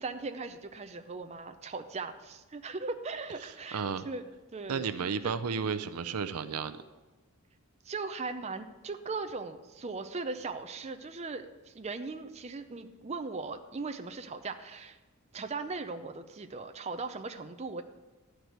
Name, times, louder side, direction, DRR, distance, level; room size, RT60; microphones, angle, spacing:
voice 1, 0.0-4.2 4.5-4.9 5.2-5.3 7.8-15.0 15.3-17.8, right 3 dB, 30° right, 8 dB, 0.5 m, -38 dB
voice 2, 3.7-4.1 4.7-6.8, right 6 dB, 90° right, 11 dB, 0.5 m, -33 dB
11.5 x 4.7 x 8.0 m, 1.2 s
head